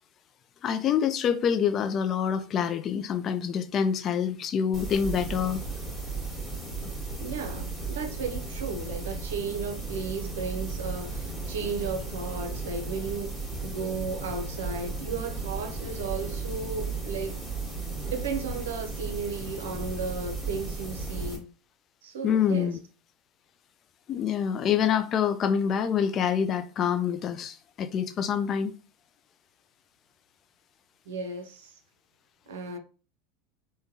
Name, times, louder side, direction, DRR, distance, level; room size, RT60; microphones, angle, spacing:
voice 1, 0.6-5.6 22.2-22.8 24.1-28.7, left 8 dB, 40° left, 0.4 m, -26 dB
sound 1, 4.7-21.4, right 3 dB, ahead, 1.4 m, -35 dB
voice 2, 7.2-17.4 18.1-21.5 22.0-22.7 31.1-31.8 32.5-32.8, right 4 dB, 80° right, 0.6 m, -35 dB
3.6 x 2.2 x 2.7 m
hypercardioid pair, 85°, 0 cm